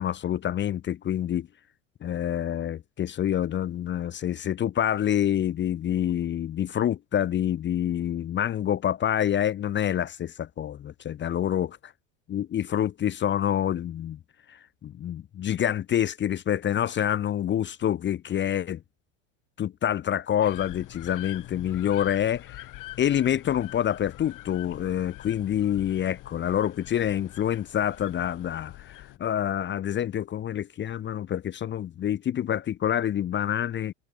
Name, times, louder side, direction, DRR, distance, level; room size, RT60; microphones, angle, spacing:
voice 1, 0.0-1.5 2.0-11.7 12.3-14.2 14.5-18.8 19.6-22.7 23.0-33.9, left 10 dB, 30° left, 0.8 m, -27 dB
sound 1, 20.4-29.2, left 17 dB, 50° left, 3.9 m, -44 dB
hypercardioid pair, 100°, 39 cm